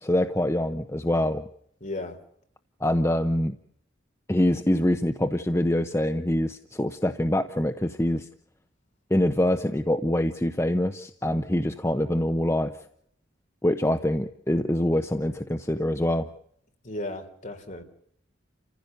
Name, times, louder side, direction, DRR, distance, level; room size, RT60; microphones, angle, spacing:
voice 1, 0.0-1.5 2.8-3.5 4.3-8.3 9.1-12.7 13.6-16.3, left 1 dB, 15° left, 8 dB, 0.8 m, -25 dB
voice 2, 1.8-2.2 16.8-17.8, left 2 dB, 40° left, 4 dB, 3.7 m, -35 dB
30.0 x 15.5 x 6.7 m, 0.70 s
head